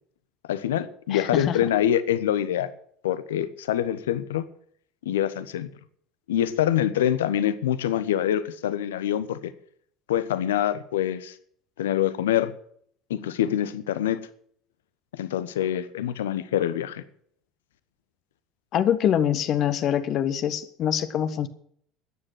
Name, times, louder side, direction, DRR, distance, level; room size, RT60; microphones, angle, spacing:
voice 1, 0.4-2.7 3.0-4.5 5.0-5.7 6.3-9.5 10.1-11.3 11.8-12.5 13.1-14.2 15.1-17.0, left 11 dB, 70° left, 14 dB, 1.1 m, -25 dB
voice 2, 1.1-1.6 18.7-21.5, left 10 dB, 50° left, 11 dB, 1.3 m, -24 dB
14.0 x 10.0 x 6.4 m, 0.63 s
figure-of-eight pair, 65°, 0 cm